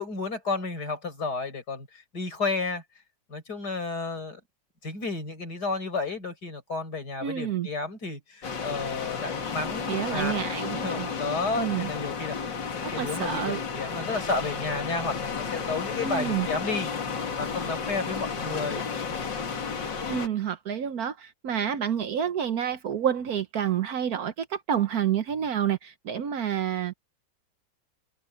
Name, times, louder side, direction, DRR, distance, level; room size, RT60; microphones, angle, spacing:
voice 1, 0.0-2.8 3.3-4.4 4.8-10.3 10.7-12.4 12.7-16.9 17.4-18.9, left 3 dB, 60° left, 5.9 m, -32 dB
voice 2, 7.2-7.7 9.9-11.1 11.6-11.9 12.8-13.6 16.0-16.5 20.1-26.9, right 9 dB, 60° right, 1.3 m, -29 dB
sound 1, 8.4-20.3, left 5 dB, 85° left, 2.8 m, -32 dB
omnidirectional pair, 1.9 m